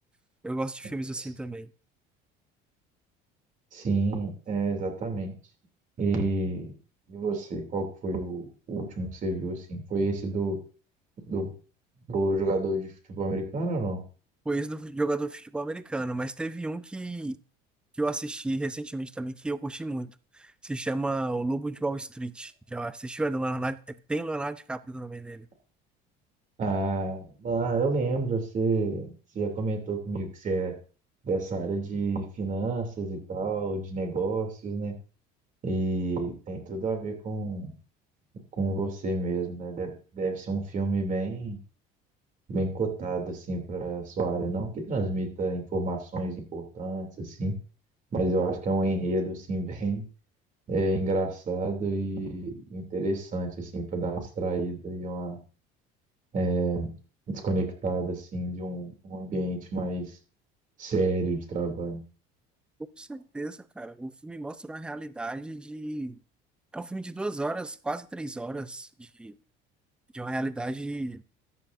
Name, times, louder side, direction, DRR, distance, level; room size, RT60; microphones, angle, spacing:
voice 1, 0.4-1.7 14.5-17.4 18.0-25.5 63.0-66.2 66.7-69.4 70.1-71.2, right 2 dB, 5° right, 0.4 m, -33 dB
voice 2, 3.7-5.4 6.0-6.7 7.1-10.6 11.3-11.5 12.1-14.0 26.6-30.8 31.2-34.9 35.6-37.7 38.6-41.6 42.5-47.5 48.1-50.0 50.7-55.4 56.3-56.9 57.3-60.1 60.8-62.0, right 2 dB, 40° right, 2.8 m, -29 dB
13.5 x 9.7 x 2.6 m
cardioid pair, 125°, 21 cm